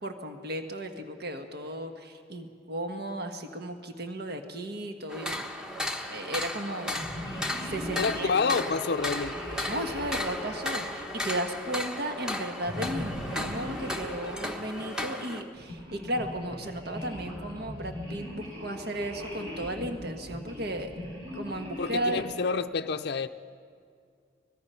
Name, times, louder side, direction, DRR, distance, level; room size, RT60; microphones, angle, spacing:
voice 1, 0.0-5.5 6.1-7.0 7.6-8.3 9.7-20.9 21.3-22.3, right 1 dB, 60° right, 5 dB, 1.4 m, -35 dB
sound 1, 5.1-15.4, left 1 dB, 5° right, 1.1 m, -35 dB
sound 2, 6.9-11.8 12.6-14.9 15.6-22.4, left 1 dB, 30° right, 8.0 m, -39 dB
voice 2, 8.0-9.4 21.8-23.3, left 5 dB, 60° left, 7 dB, 0.5 m, -28 dB
24.5 x 20.0 x 5.7 m, 2.2 s
head